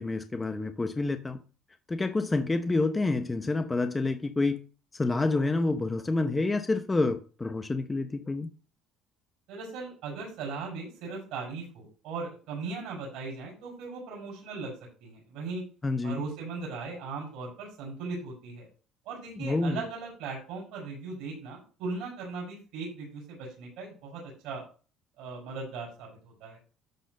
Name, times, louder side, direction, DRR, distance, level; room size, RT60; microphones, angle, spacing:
voice 1, 0.0-1.4 1.9-4.6 4.9-8.5 15.8-16.2 19.4-19.8, left 3 dB, 20° left, 0.8 m, -28 dB
voice 2, 9.5-14.7 15.0-15.6 16.0-18.7 19.1-24.6 25.2-26.6, right 4 dB, 75° right, 5.4 m, -38 dB
12.0 x 4.1 x 6.6 m
supercardioid pair, 90°, 0 cm